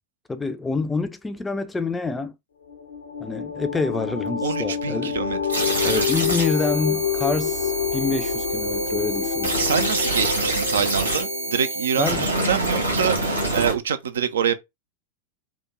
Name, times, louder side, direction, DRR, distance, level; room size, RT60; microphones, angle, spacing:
voice 1, 0.3-2.3 3.2-5.2 5.8-9.6 12.0-12.3, left 4 dB, 10° left, 0.4 m, -27 dB
sound 1, 2.7-12.9, left 7 dB, 70° left, 0.5 m, -28 dB
voice 2, 4.4-6.1 9.6-14.5, right 7 dB, 65° right, 0.4 m, -26 dB
sound 2, 5.5-13.7, right 2 dB, 80° right, 1.2 m, -26 dB
3.4 x 2.2 x 3.0 m
figure-of-eight pair, 90°, 0 cm